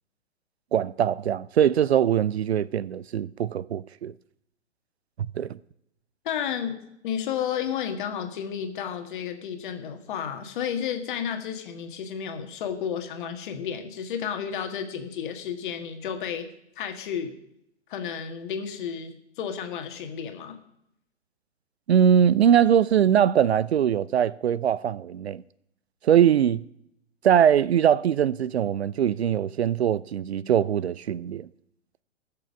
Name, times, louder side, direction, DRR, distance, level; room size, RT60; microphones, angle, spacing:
voice 1, 0.7-4.1 5.2-5.6 21.9-25.4 26.0-26.6 27.2-31.5, right 9 dB, 65° right, 0.5 m, -22 dB
voice 2, 6.3-6.8 7.0-16.5 16.8-17.3 17.9-20.6, left 8 dB, 45° left, 1.7 m, -32 dB
20.0 x 6.7 x 5.2 m
figure-of-eight pair, 120°, 36 cm